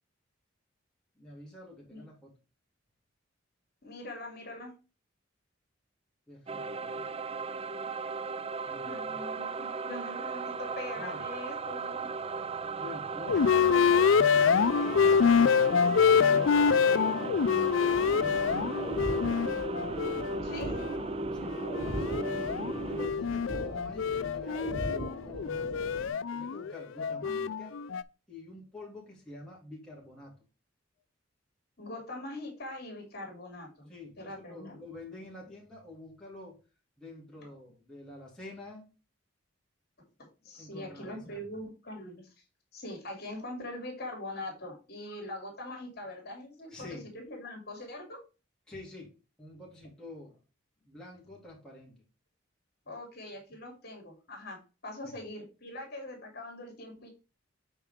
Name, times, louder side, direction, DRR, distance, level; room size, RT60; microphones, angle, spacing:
voice 1, 1.1-2.3 6.3-7.1 8.7-9.2 11.0-11.2 12.8-14.2 14.6-17.2 18.2-18.9 21.3-21.6 21.9-22.5 22.9-25.9 26.3-27.7 28.3-30.3 33.9-36.6 37.0-38.9 40.6-41.4 46.7-47.1 48.7-50.4 50.8-52.0 55.0-55.1, left 2 dB, 5° left, -5 dB, 2.9 m, -47 dB
voice 2, 3.8-4.7 8.8-12.1 20.4-20.8 31.8-33.9 34.2-34.8 40.2-42.3 42.7-48.2 52.9-54.6 54.8-57.1, left 1 dB, 50° left, 2 dB, 2.9 m, -42 dB
sound 1, 6.5-23.1, right 4 dB, 30° right, 0.4 m, -36 dB
sound 2, 13.3-21.0 21.4-28.0, left 6 dB, 70° left, 0.4 m, -26 dB
sound 3, 17.9-26.1, equal, 55° right, 3.1 m, -40 dB
8.0 x 4.6 x 3.6 m, 0.31 s
head